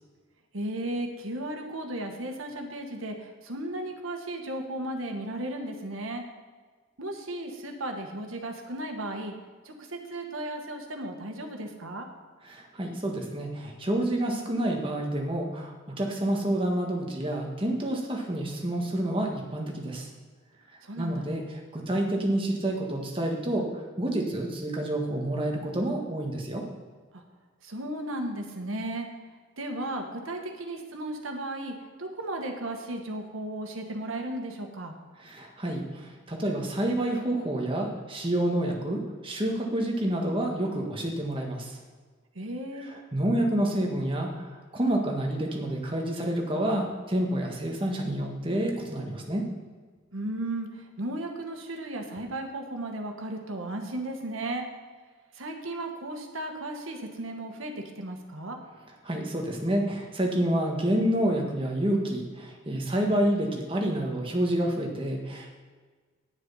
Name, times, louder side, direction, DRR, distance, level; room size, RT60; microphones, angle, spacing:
voice 1, 0.5-6.2 7.0-9.3 9.6-12.1 20.8-21.3 27.1-27.2 27.6-29.1 29.6-31.7 32.0-34.9 42.3-42.9 50.1-54.6 55.3-58.6, right 1 dB, 85° right, 3 dB, 1.4 m, -35 dB
voice 2, 12.4-20.1 21.0-23.7 24.0-26.6 35.2-41.7 42.9-49.4 59.0-65.5, right 1 dB, 25° right, 0 dB, 1.5 m, -28 dB
9.6 x 7.6 x 5.5 m, 1.5 s
head